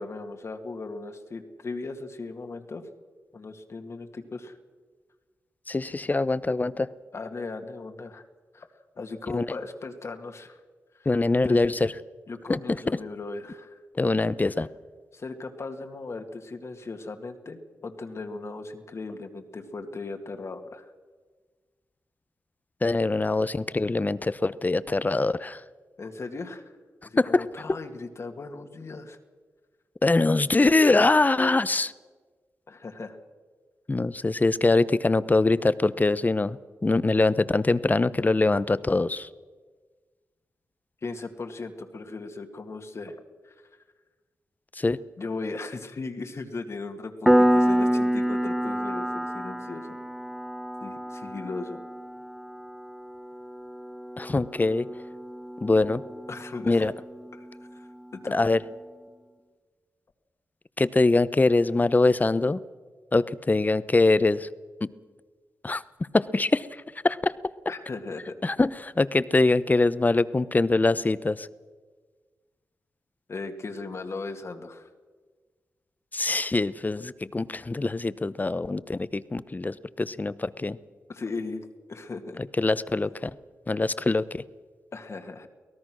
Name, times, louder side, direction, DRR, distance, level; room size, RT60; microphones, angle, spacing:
voice 1, 0.0-2.9 3.3-4.6 7.1-8.2 8.5-8.7 9.0-10.6 10.9-11.7 12.3-13.8 15.1-20.9 26.0-26.7 27.0-29.2 32.7-33.2 41.0-43.5 45.2-50.0 50.8-51.8 56.3-56.9 57.3-57.5 57.7-57.9 58.1-58.4 67.7-68.4 73.3-74.9 81.1-82.4 84.9-85.5, left 3 dB, 55° left, 5 dB, 2.1 m, -37 dB
voice 2, 5.7-6.9 9.3-9.5 11.1-11.9 12.5-12.6 14.0-14.7 22.8-25.6 27.2-27.4 30.0-31.9 33.9-36.6 36.8-39.3 44.8-45.0 54.2-54.9 55.6-56.0 56.6-56.9 58.3-58.6 60.8-62.6 63.1-64.5 64.8-64.9 65.6-65.8 66.1-66.7 67.0-67.3 68.4-71.5 76.1-80.8 82.6-83.3 83.7-84.4, left 3 dB, 30° left, 17 dB, 0.8 m, -23 dB
Piano, 47.3-57.6, equal, ahead, 0.9 m, -28 dB
23.5 x 18.0 x 6.3 m, 1.4 s
cardioid pair, 50°, 6 cm